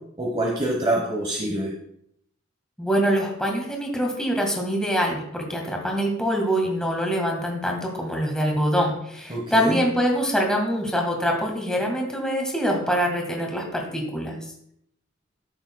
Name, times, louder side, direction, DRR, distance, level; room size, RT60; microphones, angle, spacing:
voice 1, 0.2-1.7 9.3-9.8, right 1 dB, 25° right, -1 dB, 1.1 m, -25 dB
voice 2, 2.8-14.4, equal, 5° left, 0 dB, 1.7 m, -24 dB
13.0 x 6.7 x 2.3 m, 0.72 s
head